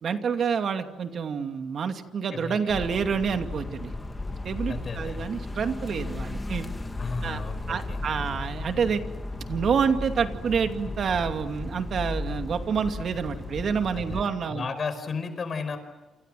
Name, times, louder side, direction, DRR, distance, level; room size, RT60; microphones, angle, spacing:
voice 1, 0.0-3.9 4.4-6.7 7.2-7.4 7.7-9.0 9.5-14.6, right 6 dB, 55° right, 7 dB, 2.5 m, -28 dB
sound 1, 2.7-14.2, left 2 dB, 15° left, 2.2 m, -35 dB
voice 2, 4.7-5.3 7.0-8.0 13.9-15.8, left 4 dB, 45° left, 10 dB, 5.3 m, -34 dB
28.5 x 27.0 x 7.7 m, 1.2 s
cardioid pair, 90°, 0 cm